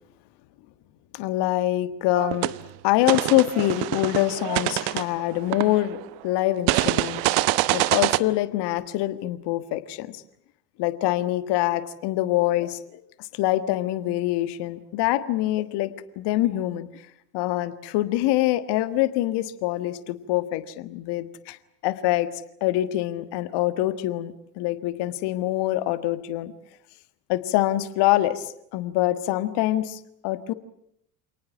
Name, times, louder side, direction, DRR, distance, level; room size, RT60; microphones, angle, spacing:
voice 1, 1.1-2.5 2.8-10.2 10.8-17.0 17.3-21.6 21.8-22.3 22.6-26.5 27.3-30.5, left 15 dB, 55° left, 13 dB, 1.6 m, -25 dB
sound 1, 2.1-2.6 3.0-6.0 6.7-8.2, right 19 dB, 60° right, 1.0 m, -25 dB
28.0 x 19.0 x 8.7 m, 0.77 s
figure-of-eight pair, 60°, 48 cm